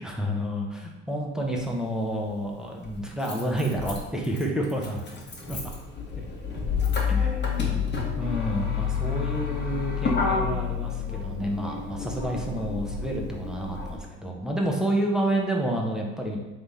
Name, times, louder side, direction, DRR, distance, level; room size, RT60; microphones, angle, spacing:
voice 1, 0.0-5.0 5.5-5.6 6.2-6.3 7.1-7.9 8.2-16.4, right 1 dB, ahead, -1 dB, 1.0 m, -29 dB
Motor vehicle (road), 1.6-1.7 2.8-14.0, left 6 dB, 35° left, 1.3 m, -29 dB
3.5 x 3.4 x 4.1 m, 1.1 s
hypercardioid pair, 60°, 32 cm